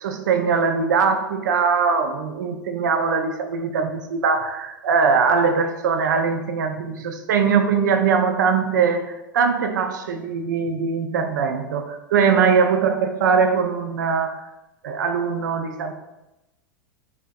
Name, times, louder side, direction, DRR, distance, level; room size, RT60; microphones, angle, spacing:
voice 1, 0.0-14.4 14.8-15.9, right 5 dB, 60° right, 6 dB, 0.4 m, -21 dB
3.5 x 2.5 x 2.3 m, 0.98 s
figure-of-eight pair, 90°, 11 cm